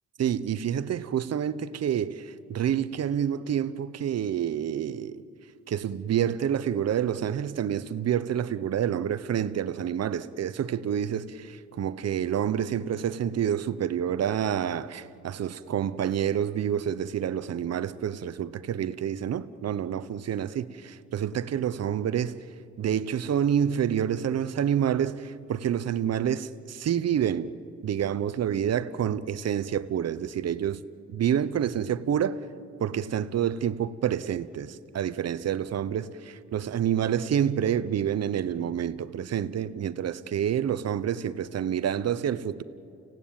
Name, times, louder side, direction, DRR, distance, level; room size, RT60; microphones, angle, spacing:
voice 1, 0.2-5.2 5.7-22.3 22.8-27.5 27.8-30.8 31.1-32.5 32.8-42.6, right 9 dB, 55° right, 1.0 m, -28 dB
29.5 x 17.0 x 8.9 m
cardioid pair, 75°, 30 cm